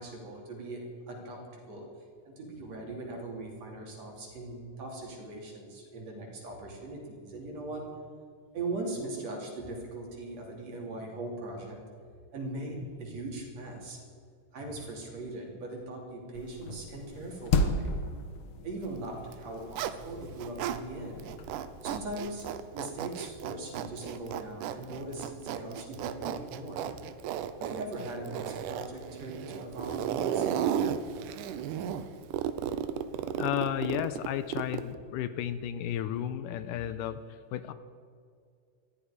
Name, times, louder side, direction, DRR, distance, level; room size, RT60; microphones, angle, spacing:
voice 1, 0.0-1.9 2.3-7.8 8.5-11.8 12.3-14.0 14.5-18.0 18.6-21.3 21.8-26.9 27.6-30.7, right 2 dB, 50° right, 0 dB, 3.9 m, -40 dB
sound 1, 16.3-22.2, left 2 dB, 60° left, 1.5 m, -35 dB
Zipper (clothing), 19.2-20.8 21.2-35.0, right 9 dB, 80° right, 2.2 m, -34 dB
voice 2, 33.4-37.2 37.5-37.7, left 11 dB, 80° left, 12 dB, 2.2 m, -33 dB
20.0 x 14.0 x 5.0 m, 2.2 s
omnidirectional pair, 3.9 m